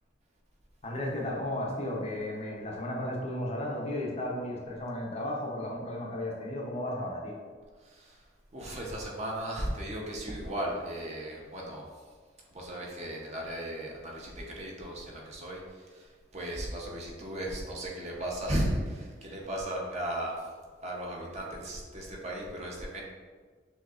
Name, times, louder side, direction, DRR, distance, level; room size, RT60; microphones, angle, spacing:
voice 1, 0.8-7.4, left 1 dB, 35° left, -2 dB, 0.6 m, -34 dB
voice 2, 8.5-11.8 12.5-15.6 15.9-16.0 16.3-20.4 20.8-23.0, right 1 dB, 40° right, -2 dB, 0.7 m, -35 dB
6.3 x 2.8 x 2.4 m, 1.5 s
head